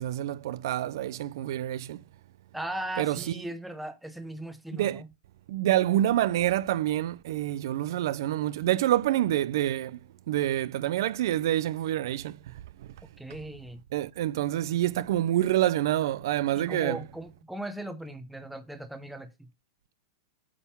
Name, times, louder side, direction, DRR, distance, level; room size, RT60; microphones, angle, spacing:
voice 1, 0.0-2.0 3.0-3.2 4.7-5.0 5.5-10.0 10.3-12.5 12.8-12.9 13.9-17.0, right 13 dB, 60° right, 0.5 m, -27 dB
voice 2, 2.5-5.1 13.2-13.8 16.5-19.5, right 1 dB, ahead, 0.6 m, -38 dB
8.5 x 3.6 x 5.6 m
supercardioid pair, 155°, 2 cm